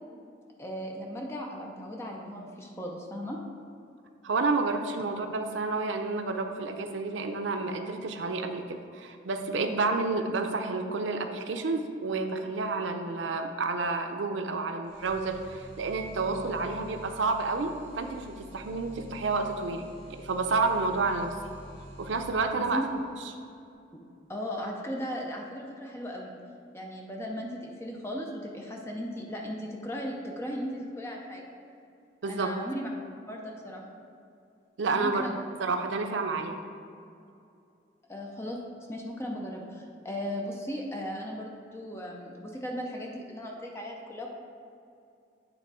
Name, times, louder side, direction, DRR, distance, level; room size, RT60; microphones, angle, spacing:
voice 1, 0.6-3.4 22.6-22.9 23.9-24.0 24.3-26.3 26.7-31.4 32.2-32.9 33.3-33.8 34.9-35.4 38.1-38.6 38.9-44.3, equal, 15° left, -1 dB, 0.6 m, -37 dB
voice 2, 4.2-19.9 20.2-21.3 22.0-22.8 32.2-32.5 34.8-35.2 35.6-36.6, right 3 dB, 85° right, 6 dB, 0.5 m, -30 dB
sound 1, 14.9-22.9, equal, 35° right, 1.6 m, -48 dB
9.1 x 3.6 x 4.8 m, 2.5 s
head